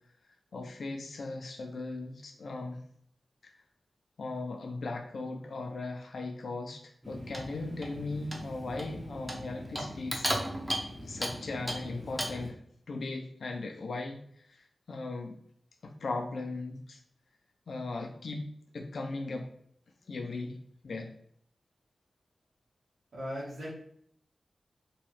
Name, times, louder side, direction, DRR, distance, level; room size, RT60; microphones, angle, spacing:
voice 1, 0.5-2.8 3.4-3.5 4.2-6.8 7.1-10.3 11.0-12.6 12.9-14.2 14.9-15.4 15.8-17.0 17.7-18.5 18.7-19.5 20.1-20.6 20.8-21.1, left 3 dB, 75° left, 2 dB, 0.5 m, -37 dB
Clock, 7.0-12.5, equal, 15° right, 0.7 m, -37 dB
voice 2, 23.1-23.7, equal, 80° right, -7 dB, 1.3 m, -38 dB
2.9 x 2.3 x 3.1 m, 0.65 s
cardioid pair, 65°, 0 cm